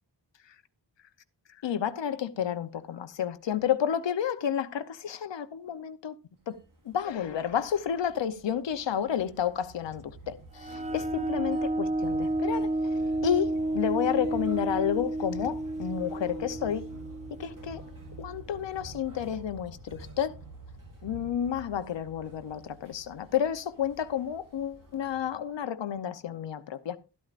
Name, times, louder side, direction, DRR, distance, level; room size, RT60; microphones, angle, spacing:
voice 1, 1.6-6.1 6.5-6.6 6.8-12.7 13.2-16.9 17.4-17.8 18.2-20.3 21.0-27.0, left 9 dB, 75° left, 0.9 m, -31 dB
sound 1, 6.4-25.6, right 2 dB, 45° right, 4.4 m, -48 dB
sound 2, 10.6-18.0, right 1 dB, 15° right, 0.5 m, -31 dB
13.0 x 12.0 x 2.5 m
wide cardioid pair, 140°, 43 cm